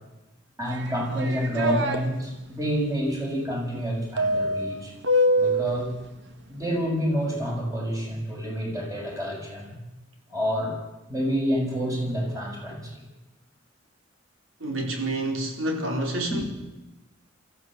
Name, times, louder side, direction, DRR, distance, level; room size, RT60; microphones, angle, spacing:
voice 1, 0.6-4.9 5.4-5.9 6.5-9.8 10.3-10.8 11.1-12.9 16.3-16.4, equal, 20° right, -1 dB, 6.4 m, -28 dB
sound 1, 0.7-2.0 4.2-5.8, equal, 65° right, 2.1 m, -24 dB
voice 2, 14.6-16.4, right 1 dB, 80° right, 2 dB, 4.4 m, -28 dB
23.0 x 15.0 x 7.7 m, 1.0 s
head